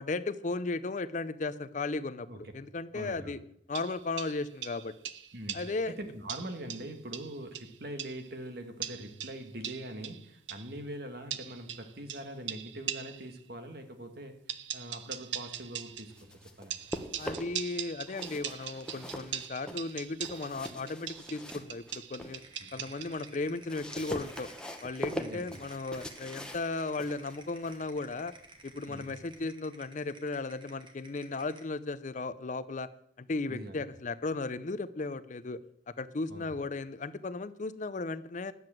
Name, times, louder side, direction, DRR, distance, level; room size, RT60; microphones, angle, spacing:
voice 1, 0.0-3.4 3.7-4.9 5.5-5.9 17.2-22.4 22.7-24.5 24.8-28.3 28.6-32.9 33.2-35.6 36.0-38.5, left 3 dB, 45° left, 15 dB, 0.5 m, -35 dB
voice 2, 2.9-3.4 5.3-16.1 16.6-16.8 22.6-22.7 25.2-25.6 28.9-29.1 33.5-33.8 36.3-36.6, right 1 dB, 55° right, 7 dB, 1.7 m, -43 dB
sound 1, 3.7-5.9 6.3-8.3 8.8-10.7 11.3-13.3 14.5-16.2 16.7-23.4, right 10 dB, 85° right, 0.7 m, -41 dB
sound 2, 15.9-17.7 18.1-22.4 22.8-29.4, equal, 5° left, 1.0 m, -43 dB
sound 3, 22.4-31.7, right 3 dB, 25° right, 1.5 m, -54 dB
11.0 x 7.7 x 7.5 m, 0.71 s
head